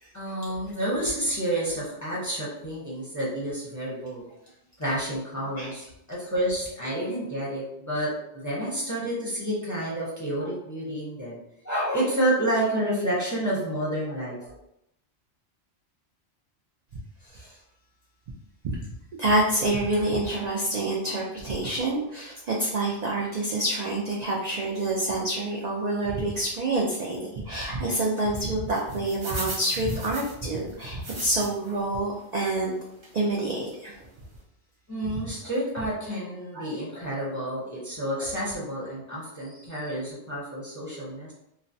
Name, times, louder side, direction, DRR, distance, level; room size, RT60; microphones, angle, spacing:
voice 1, 0.1-4.2 4.8-11.4 11.6-14.6 34.9-41.3, right 1 dB, 20° left, -7 dB, 0.6 m, -29 dB
voice 2, 17.2-17.6 18.7-18.8 19.2-32.7 33.1-34.0 36.5-36.7, right 2 dB, 70° right, -3 dB, 0.4 m, -27 dB
sound 1, 28.7-31.7 32.2-32.3 33.0-33.2 33.7-33.8 34.0-34.2, right 1 dB, 40° right, 0.9 m, -38 dB
3.1 x 2.0 x 2.6 m, 0.80 s
omnidirectional pair, 1.2 m